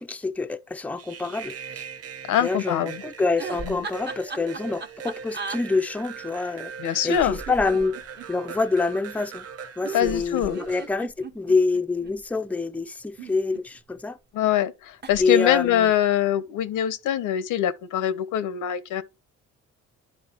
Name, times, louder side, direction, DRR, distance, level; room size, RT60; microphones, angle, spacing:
voice 1, 0.0-1.8 2.4-6.7 7.0-8.0 8.3-9.5 9.8-14.2 15.2-15.9, left 3 dB, 5° left, 0.5 m, -26 dB
sound 1, 1.0-10.9, right 7 dB, 50° right, 1.0 m, -40 dB
voice 2, 2.3-3.0 3.7-3.8 6.8-7.4 9.9-10.6 14.3-19.0, left 10 dB, 85° left, 0.9 m, -23 dB
sound 2, 3.4-5.6 7.0-8.6 9.8-12.1 13.0-14.0 15.0-15.2 15.5-15.9, right 4 dB, 35° right, 1.2 m, -37 dB
11.0 x 4.3 x 3.0 m
cardioid pair, 90°, 30 cm